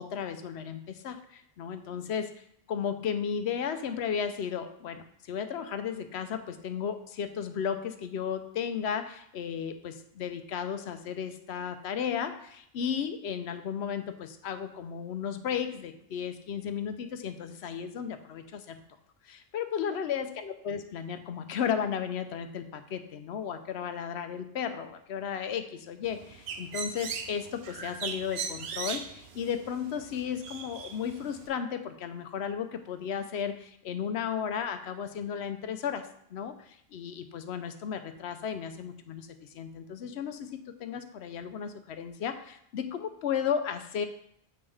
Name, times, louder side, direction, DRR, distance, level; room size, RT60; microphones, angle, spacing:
voice 1, 0.0-2.3 2.7-18.8 19.2-44.0, left 7 dB, 85° left, 9 dB, 0.9 m, -34 dB
Bird, 26.0-31.5, right 6 dB, 75° right, 0.9 m, -39 dB
7.8 x 5.4 x 3.4 m, 0.70 s
omnidirectional pair, 1.1 m